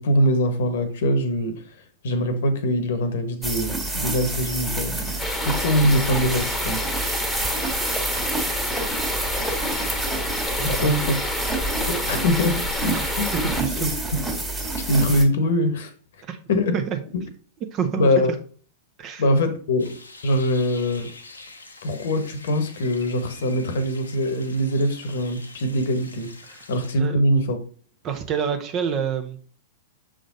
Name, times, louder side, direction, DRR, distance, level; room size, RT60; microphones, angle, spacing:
voice 1, 0.0-1.6 2.0-5.1 5.4-6.8 10.6-11.2 11.9-13.3 13.8-13.9 14.9-15.9 16.5-16.8 17.1-17.2 18.0-18.3 19.2-21.1 21.8-26.3 26.7-27.6, equal, 65° left, 1.1 m, -23 dB
sound 1, 3.4-15.2, right 2 dB, 10° right, 1.7 m, -28 dB
sound 2, 5.2-13.6, left 2 dB, 10° left, 1.2 m, -29 dB
voice 2, 10.6-10.9 12.9-13.0 13.3-13.9 16.3-16.4 16.7-17.0 17.7-18.1 19.0-19.2 26.5-26.7 27.0-27.2 28.0-29.4, right 7 dB, 35° right, 1.0 m, -27 dB
sound 3, 19.8-26.9, left 3 dB, 90° left, 0.8 m, -45 dB
6.4 x 3.9 x 3.9 m
hypercardioid pair, 105°, 0 cm